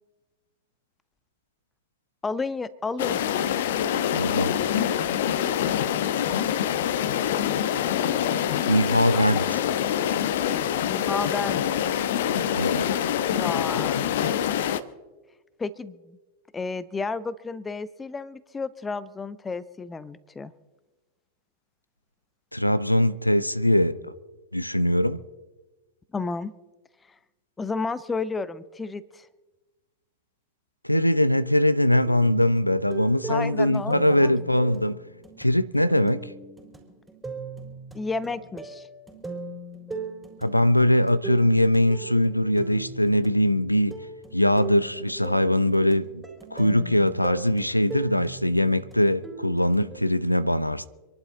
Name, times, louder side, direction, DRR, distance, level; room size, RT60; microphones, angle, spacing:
voice 1, 2.2-3.2 9.1-9.4 10.9-11.6 13.3-14.2 15.6-16.2 16.5-20.5 26.1-26.5 27.6-29.3 33.3-34.3 37.9-38.9, left 4 dB, 15° left, 0.7 m, -32 dB
sound 1, 3.0-14.8, left 9 dB, 55° left, 0.8 m, -25 dB
voice 2, 4.1-4.5 8.7-9.6 12.5-12.9 22.5-24.0 24.5-25.2 30.8-35.0 35.4-36.3 40.4-44.0 44.3-46.2 46.5-50.8, left 1 dB, 90° left, 0.5 m, -22 dB
sound 2, 32.0-50.0, right 4 dB, 10° right, 3.9 m, -39 dB
26.5 x 11.5 x 3.9 m
figure-of-eight pair, 90°, 0 cm